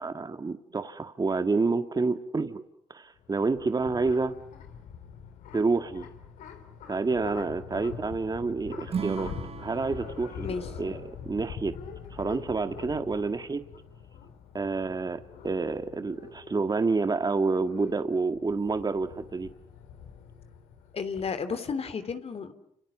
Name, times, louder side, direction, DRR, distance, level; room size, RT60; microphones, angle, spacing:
voice 1, 0.0-2.6 2.9-4.3 5.5-6.1 6.9-9.3 9.6-10.5 10.8-11.7 12.1-13.6 14.5-19.5, right 3 dB, 30° right, 9 dB, 1.7 m, -28 dB
sound 1, 3.2-21.3, left 7 dB, 80° left, 3.4 m, -44 dB
Acoustic guitar / Strum, 8.9-12.2, right 7 dB, 50° right, 1.2 m, -38 dB
voice 2, 20.9-22.5, left 5 dB, 50° left, 10 dB, 3.0 m, -32 dB
30.0 x 27.0 x 7.3 m, 0.74 s
supercardioid pair, 60°, 13 cm